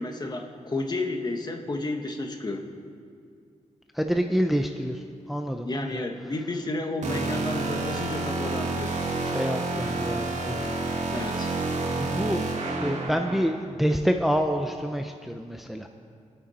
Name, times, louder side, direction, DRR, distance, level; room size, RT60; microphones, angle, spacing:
voice 1, 0.0-2.7 5.6-9.0 11.1-11.5, left 2 dB, 35° left, 3 dB, 1.4 m, -31 dB
voice 2, 3.9-5.0 5.3-5.9 9.3-10.7 12.0-12.4 12.8-15.9, equal, ahead, 4 dB, 0.7 m, -27 dB
sound 1, 7.0-13.5, right 3 dB, 70° right, 2.3 m, -29 dB
26.5 x 9.4 x 4.3 m, 2.3 s
wide cardioid pair, 105°, 13 cm